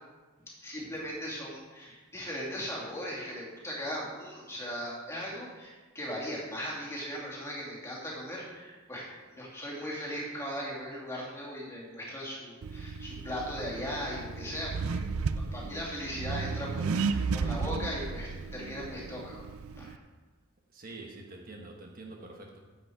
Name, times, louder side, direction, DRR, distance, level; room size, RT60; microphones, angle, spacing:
voice 1, 0.6-9.1 9.3-19.4 19.8-19.9, equal, 15° left, -5 dB, 2.6 m, -38 dB
Accelerating revving vroom, 12.6-20.0, right 4 dB, 80° right, 0.5 m, -34 dB
voice 2, 20.7-22.6, right 2 dB, 45° right, 1 dB, 1.1 m, -46 dB
10.0 x 7.9 x 4.6 m, 1.3 s
head